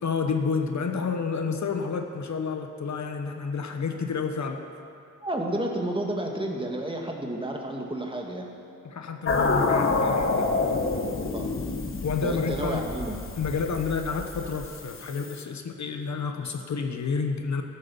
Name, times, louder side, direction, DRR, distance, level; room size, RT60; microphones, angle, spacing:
voice 1, 0.0-4.6 8.8-10.5 12.0-12.8 13.4-17.6, left 5 dB, 65° left, 5 dB, 1.1 m, -29 dB
voice 2, 5.2-8.5 11.3-11.6 12.2-13.2, right 1 dB, 15° right, 0 dB, 2.0 m, -31 dB
sound 1, 9.3-15.4, left 3 dB, 40° left, 1.4 m, -28 dB
13.5 x 8.3 x 7.1 m, 2.5 s
cardioid pair, 75°, 31 cm